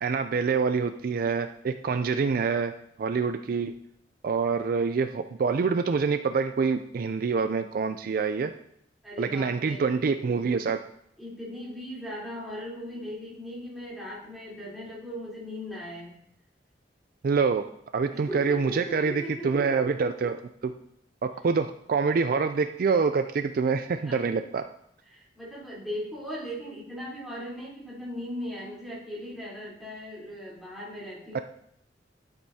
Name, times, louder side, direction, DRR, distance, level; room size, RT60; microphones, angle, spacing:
voice 1, 0.0-2.7 3.0-3.7 4.2-8.5 9.2-10.8 17.2-17.6 17.9-20.4 20.6-20.7 21.2-24.6 31.3-31.4, right 5 dB, 55° right, 9 dB, 0.4 m, -26 dB
voice 2, 9.0-9.9 11.2-16.2 18.1-19.7 20.2-20.3 24.0-24.4 25.1-31.4, equal, ahead, -8 dB, 3.5 m, -38 dB
11.5 x 8.0 x 2.8 m, 0.71 s
head